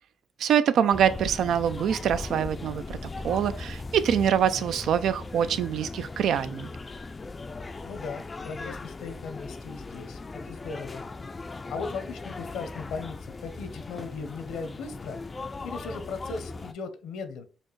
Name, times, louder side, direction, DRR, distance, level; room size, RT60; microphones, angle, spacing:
voice 1, 0.4-3.0 3.2-6.7, right 9 dB, 70° right, 0.3 m, -24 dB
sound 1, 0.9-16.7, left 3 dB, 30° left, 0.3 m, -38 dB
voice 2, 7.8-11.0 11.7-17.4, left 4 dB, 80° left, 0.7 m, -38 dB
4.2 x 2.5 x 3.1 m
cardioid pair, 90°, 0 cm